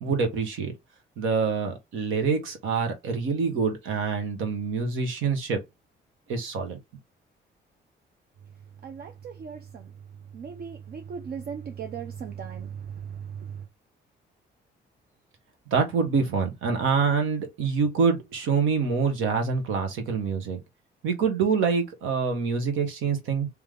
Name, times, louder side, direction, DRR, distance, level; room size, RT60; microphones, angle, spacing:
voice 1, 0.0-0.7 1.2-5.6 6.3-6.8 15.7-20.6 21.0-23.5, right 5 dB, 90° right, 1.5 m, -26 dB
voice 2, 8.8-9.9 10.3-13.7, right 7 dB, 50° right, 0.6 m, -37 dB
3.3 x 3.3 x 3.7 m
cardioid pair, 90°, 20 cm